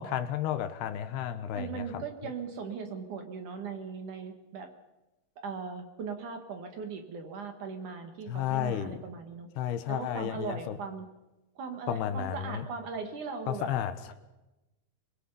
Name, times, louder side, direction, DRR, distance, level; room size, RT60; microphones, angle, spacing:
voice 1, 0.0-2.0 8.3-9.0 9.6-10.8 11.9-12.6 13.5-14.1, left 10 dB, 75° left, 2.9 m, -32 dB
voice 2, 1.5-4.7 5.4-9.5 9.9-11.1 11.6-13.7, right 5 dB, 55° right, 2.7 m, -39 dB
25.0 x 21.0 x 5.6 m
omnidirectional pair, 4.8 m